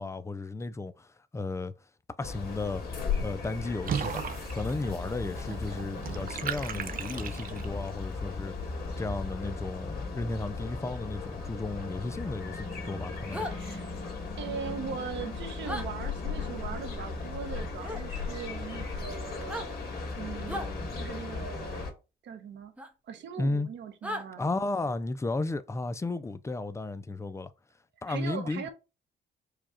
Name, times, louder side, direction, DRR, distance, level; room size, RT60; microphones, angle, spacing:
voice 1, 0.0-1.7 2.2-4.3 4.5-13.5 23.4-23.7 24.4-27.5 28.0-28.7, left 2 dB, 15° left, 0.4 m, -34 dB
sound 1, 2.2-21.9, left 4 dB, 50° left, 1.8 m, -36 dB
Water / Bathtub (filling or washing), 3.8-7.9, right 7 dB, 45° right, 0.5 m, -37 dB
sound 2, 13.3-13.5 15.6-15.9 17.8-18.0 19.4-19.7 20.5-20.7 22.8-22.9 24.0-24.2, equal, 5° right, 0.8 m, -35 dB
voice 2, 13.5-13.9 14.4-19.8 20.1-21.9 22.2-22.7 23.1-24.4 28.1-28.7, right 7 dB, 65° right, 0.9 m, -40 dB
4.9 x 2.3 x 4.3 m
cardioid pair, 90°, 20 cm